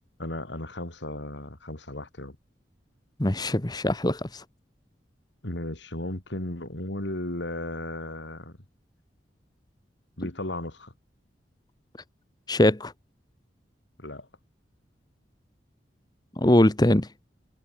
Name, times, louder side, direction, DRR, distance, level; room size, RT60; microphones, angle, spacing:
voice 1, 0.2-2.4 5.4-8.6 10.2-10.9 14.0-14.3, left 1 dB, 75° left, 3.8 m, -35 dB
voice 2, 3.2-4.4 12.5-12.9 16.4-17.1, left 1 dB, 20° left, 1.2 m, -22 dB
head